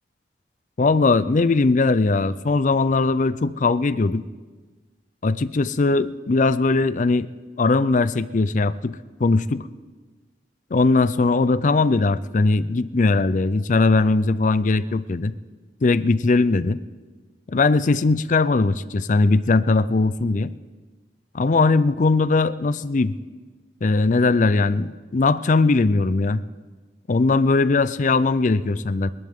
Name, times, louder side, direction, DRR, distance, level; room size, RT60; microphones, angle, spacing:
voice 1, 0.8-4.2 5.2-7.3 7.6-9.7 10.7-15.3 15.8-16.8 17.5-20.5 21.3-23.1 23.8-26.4 27.1-29.1, left 3 dB, 45° left, 16 dB, 0.5 m, -20 dB
28.5 x 11.0 x 3.7 m, 1.4 s
head